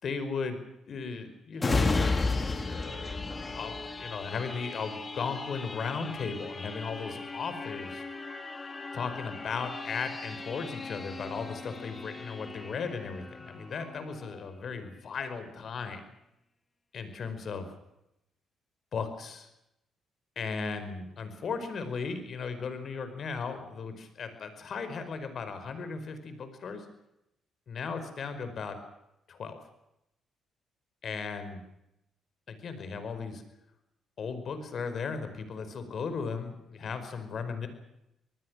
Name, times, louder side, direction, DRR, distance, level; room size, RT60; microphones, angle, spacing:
voice 1, 0.0-0.6 0.9-2.1 2.7-3.2 3.5-8.0 8.9-16.1 16.9-17.7 18.9-19.5 20.4-26.8 27.7-28.8 29.3-29.6 31.0-31.6 32.5-33.4 34.2-37.7, left 5 dB, 55° left, 10 dB, 5.0 m, -36 dB
sound 1, 1.6-14.9 15.4-15.5, left 3 dB, 25° left, 3.1 m, -35 dB
27.0 x 20.0 x 6.4 m, 0.85 s
cardioid pair, 90°, 0 cm